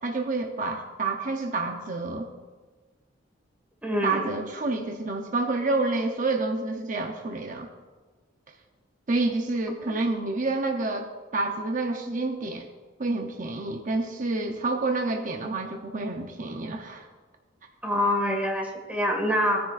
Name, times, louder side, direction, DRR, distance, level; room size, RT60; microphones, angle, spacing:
voice 1, 0.0-2.3 4.0-7.7 9.1-11.1 11.3-12.7 13.0-17.1, right 3 dB, 45° right, 3 dB, 0.7 m, -28 dB
voice 2, 3.8-4.3 9.8-9.9 17.8-19.6, left 1 dB, 10° right, 1 dB, 1.8 m, -25 dB
17.5 x 10.0 x 2.5 m, 1.3 s
head